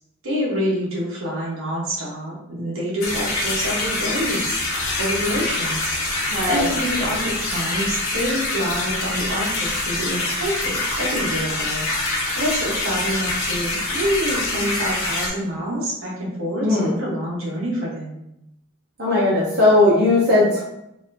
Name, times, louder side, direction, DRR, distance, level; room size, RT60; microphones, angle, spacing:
voice 1, 0.2-4.5 5.0-6.0 6.4-11.9 12.2-18.2, equal, 75° right, -5 dB, 1.3 m, -27 dB
sound 1, 3.0-15.3, left 2 dB, 80° left, 1.0 m, -25 dB
voice 2, 6.3-6.7 16.6-16.9 19.0-20.6, left 2 dB, 50° right, -7 dB, 1.0 m, -17 dB
4.3 x 2.9 x 2.7 m, 0.83 s
head